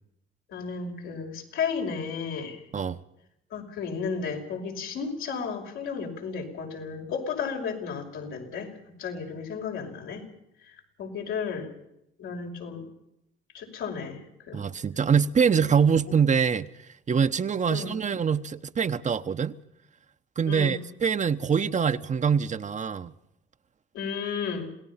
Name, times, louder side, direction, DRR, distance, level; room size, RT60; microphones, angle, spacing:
voice 1, 0.5-2.6 3.5-10.3 10.6-11.7 12.2-12.9 13.5-14.7 15.5-15.7 17.7-18.0 20.5-20.8 23.9-24.7, left 6 dB, 90° left, 5.7 m, -33 dB
voice 2, 14.5-16.7 17.1-19.6 20.4-23.1, right 6 dB, 40° right, 1.0 m, -24 dB
27.5 x 18.5 x 5.8 m
cardioid pair, 90°, 20 cm